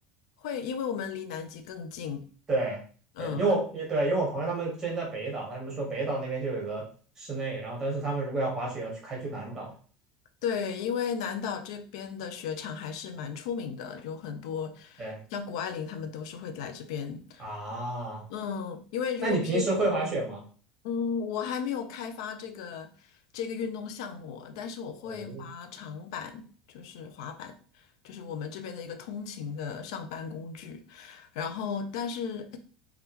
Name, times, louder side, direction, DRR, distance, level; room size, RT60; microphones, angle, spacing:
voice 1, 0.4-2.2 3.2-3.5 10.4-17.8 18.3-19.6 20.8-32.6, left 7 dB, 85° left, 0.4 m, -35 dB
voice 2, 2.5-2.8 3.2-6.8 7.2-9.7 15.0-15.2 17.4-18.3 19.2-20.4 25.0-25.4, right 2 dB, 15° right, 1.0 m, -30 dB
3.5 x 2.3 x 2.8 m
cardioid pair, 175°, 3 cm